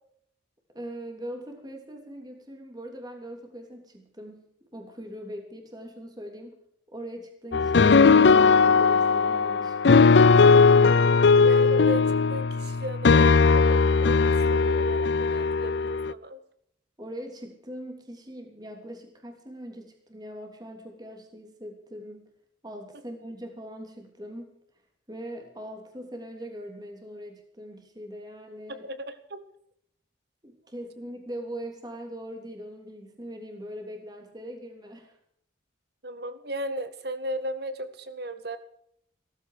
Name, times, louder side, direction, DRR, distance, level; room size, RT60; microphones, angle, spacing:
voice 1, 0.7-4.4 4.7-6.6 6.9-10.1 17.0-22.3 22.6-24.5 25.1-28.9 30.4-35.2, equal, 20° right, 2 dB, 3.1 m, -41 dB
sound 1, 7.5-16.1, left 4 dB, 65° left, 0.5 m, -19 dB
voice 2, 11.4-16.4 28.7-29.4 36.0-38.6, right 1 dB, 55° right, 10 dB, 1.8 m, -35 dB
17.0 x 15.0 x 5.0 m, 0.69 s
head